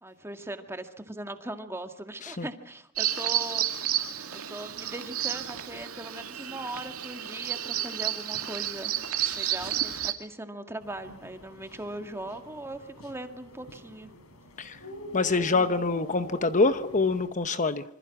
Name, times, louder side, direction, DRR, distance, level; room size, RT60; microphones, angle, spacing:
voice 1, 0.0-3.7 4.5-8.9 9.3-14.1, right 1 dB, 10° right, 1.9 m, -39 dB
Bird vocalization bird call bird song, 3.0-10.1, right 11 dB, 90° right, 2.4 m, -31 dB
sound 1, 10.8-17.3, left 2 dB, 85° left, 4.0 m, -44 dB
voice 2, 15.1-17.8, left 3 dB, 35° left, 0.9 m, -25 dB
27.0 x 25.5 x 6.1 m
head